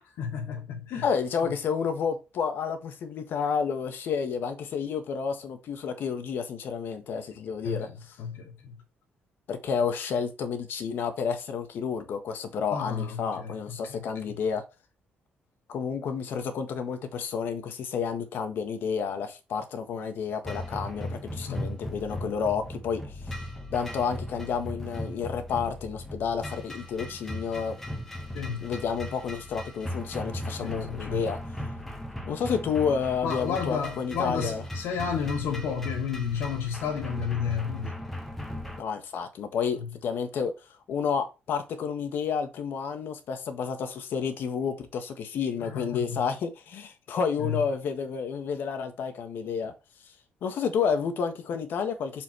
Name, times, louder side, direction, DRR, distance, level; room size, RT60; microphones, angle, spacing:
voice 1, 0.2-1.1 7.6-8.8 12.7-14.3 21.5-21.7 28.3-28.7 30.6-31.3 33.2-38.0 39.8-39.9 45.6-46.2 47.4-47.6, left 7 dB, 85° left, 2.5 m, -32 dB
voice 2, 1.0-7.9 9.5-14.6 15.7-23.2 23.7-27.8 28.6-31.4 32.2-34.6 38.8-49.7 50.4-52.2, left 6 dB, 60° left, 1.6 m, -30 dB
sound 1, 20.4-38.8, left 1 dB, 5° left, 1.3 m, -37 dB
6.9 x 5.8 x 3.1 m
cardioid pair, 165°, 4 cm